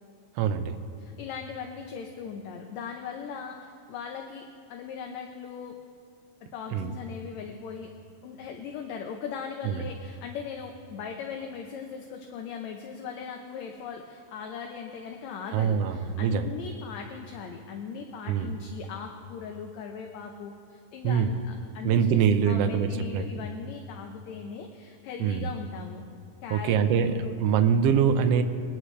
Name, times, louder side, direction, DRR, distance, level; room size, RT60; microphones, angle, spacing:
voice 1, 0.4-0.8 6.7-6.9 9.6-9.8 15.5-16.5 18.3-18.5 21.0-21.3 21.8-23.2 25.2-25.5 26.5-27.1 27.4-28.4, right 7 dB, 75° right, 8 dB, 1.4 m, -24 dB
voice 2, 1.0-5.8 6.5-7.9 8.2-26.1 26.4-27.4, left 6 dB, 75° left, 3 dB, 2.0 m, -39 dB
24.0 x 9.9 x 3.2 m, 2.4 s
omnidirectional pair, 3.5 m